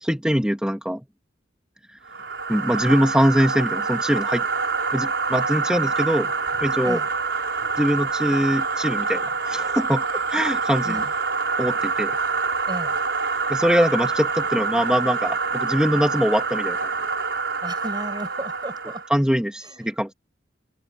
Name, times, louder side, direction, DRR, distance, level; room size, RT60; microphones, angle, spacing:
voice 1, 0.0-1.0 2.5-4.5 4.9-6.3 6.6-7.0 7.8-11.0 11.6-12.1 13.5-16.9 19.1-20.1, equal, 5° right, 2.1 m, -22 dB
sound 1, 2.1-19.1, right 4 dB, 70° right, 5.2 m, -26 dB
voice 2, 10.8-11.1 12.6-13.0 17.6-19.1 19.6-20.0, right 1 dB, 25° right, 6.4 m, -34 dB
open air
head